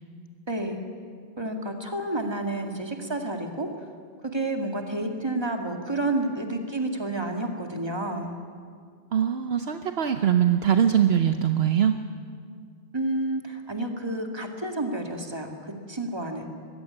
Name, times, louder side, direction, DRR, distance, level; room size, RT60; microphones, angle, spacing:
voice 1, 0.5-0.8 1.4-3.7 4.3-8.4 12.9-15.5 15.9-16.5, right 2 dB, 25° right, 3 dB, 2.1 m, -30 dB
voice 2, 9.1-11.9, right 9 dB, 65° right, 7 dB, 1.0 m, -22 dB
21.5 x 15.5 x 9.8 m, 2.2 s
omnidirectional pair, 1.2 m